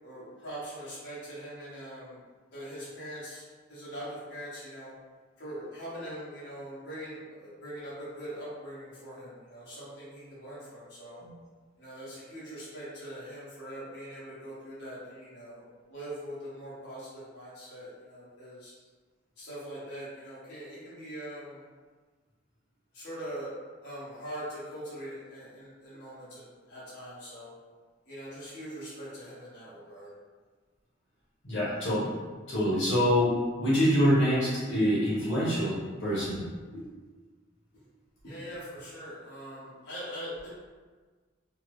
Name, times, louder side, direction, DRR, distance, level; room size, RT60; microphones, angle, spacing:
voice 1, 0.0-2.2 2.5-3.4 3.7-4.9 5.4-11.2 11.8-18.7 19.4-21.6 22.9-23.5 23.8-27.5 28.1-30.1 36.7-36.8 37.7-37.8 38.2-40.5, equal, 60° left, -10 dB, 1.2 m, -42 dB
voice 2, 31.4-32.1 32.5-36.4, equal, 85° left, -9 dB, 1.1 m, -25 dB
3.3 x 2.0 x 3.1 m, 1.4 s
head